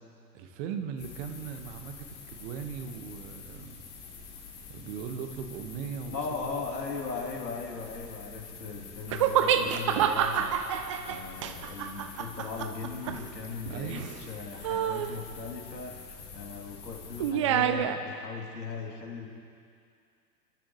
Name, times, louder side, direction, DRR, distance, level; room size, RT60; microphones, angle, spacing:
voice 1, 0.3-3.8 4.7-6.5 13.7-14.1, right 7 dB, 45° right, 6 dB, 1.6 m, -38 dB
sound 1, 1.0-17.3, left 6 dB, 35° left, 4.4 m, -47 dB
voice 2, 6.1-10.6 11.0-19.3, left 4 dB, 75° left, -1 dB, 3.3 m, -38 dB
sound 2, 9.1-14.3 14.6-15.2 17.2-18.0, right 9 dB, 20° right, 0.3 m, -28 dB
29.0 x 13.0 x 3.2 m, 2.4 s
figure-of-eight pair, 100°, 50 cm